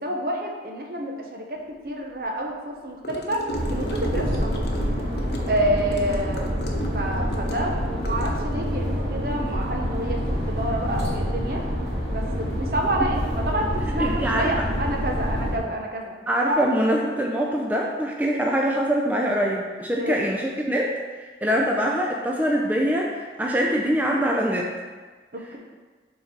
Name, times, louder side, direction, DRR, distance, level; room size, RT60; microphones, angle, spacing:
voice 1, 0.0-1.6 1.8-4.6 5.5-6.6 6.9-11.6 12.1-16.1 16.4-16.7 20.0-20.3 25.3-25.6, right 1 dB, 55° right, 1 dB, 0.9 m, -28 dB
Gurgling / Car passing by / Sink (filling or washing), 3.0-8.7, equal, 70° left, 0.8 m, -35 dB
sound 1, 3.5-15.6, equal, 80° right, 1.9 m, -27 dB
voice 2, 14.0-14.5 16.3-20.9 21.4-24.7, equal, 10° right, -2 dB, 0.4 m, -23 dB
6.4 x 3.9 x 4.5 m, 1.4 s
head